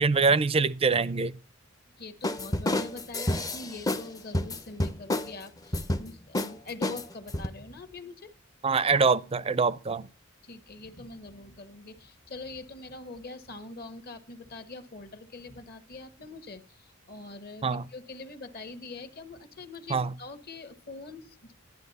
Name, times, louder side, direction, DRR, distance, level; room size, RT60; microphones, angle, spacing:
voice 1, 0.0-1.3 8.6-10.1 17.6-17.8 19.9-20.1, right 4 dB, 25° right, 0.5 m, -24 dB
voice 2, 2.0-8.3 9.6-9.7 10.4-21.5, left 3 dB, 45° left, 1.3 m, -43 dB
sound 1, 2.2-4.1 4.3-5.3 5.7-6.1 6.3-6.5 6.8-7.5, left 1 dB, 15° left, 0.6 m, -29 dB
12.0 x 10.5 x 4.1 m
head